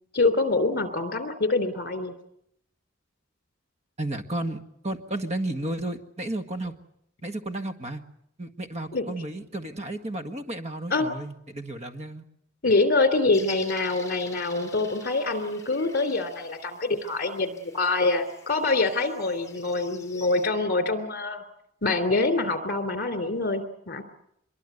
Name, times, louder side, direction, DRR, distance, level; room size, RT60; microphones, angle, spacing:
voice 1, 0.1-2.1 8.9-9.0 10.9-11.1 12.6-21.4 21.8-24.0, left 3 dB, 50° left, 8 dB, 3.1 m, -25 dB
voice 2, 4.0-6.7 7.2-8.0 8.4-12.2, right 1 dB, 35° right, 7 dB, 1.7 m, -33 dB
sound 1, 13.3-20.5, left 5 dB, 15° left, 4.4 m, -47 dB
25.0 x 22.0 x 8.1 m, 0.76 s
head